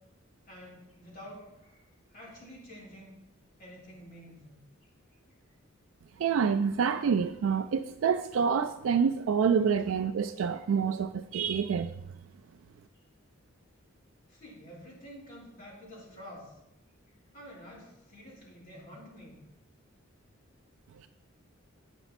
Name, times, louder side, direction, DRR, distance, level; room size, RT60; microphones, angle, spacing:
voice 1, 0.5-3.1 3.6-4.6 14.3-16.5 17.3-19.4, equal, 45° left, -5 dB, 3.2 m, -49 dB
voice 2, 6.2-11.9, right 6 dB, 75° right, 8 dB, 0.3 m, -27 dB
8.9 x 5.9 x 4.1 m, 0.84 s
head